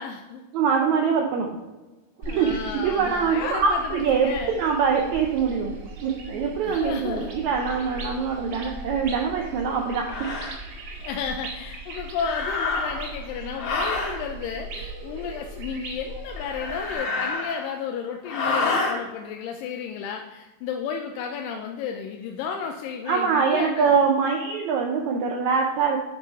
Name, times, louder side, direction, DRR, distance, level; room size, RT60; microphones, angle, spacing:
voice 1, 0.0-0.4 2.2-4.6 6.6-7.4 11.0-24.0, left 6 dB, 80° left, 2 dB, 2.1 m, -33 dB
voice 2, 0.5-1.5 2.3-4.3 4.6-10.3 23.1-26.0, right 6 dB, 85° right, 1 dB, 1.6 m, -24 dB
sound 1, 2.2-17.0, right 2 dB, 60° right, 1.6 m, -39 dB
sound 2, 9.1-9.3 10.0-10.5 12.2-13.1 13.6-14.2 16.4-17.8 18.3-19.0, left 3 dB, 55° left, 2.3 m, -28 dB
9.0 x 4.8 x 4.2 m, 1.1 s
omnidirectional pair, 4.2 m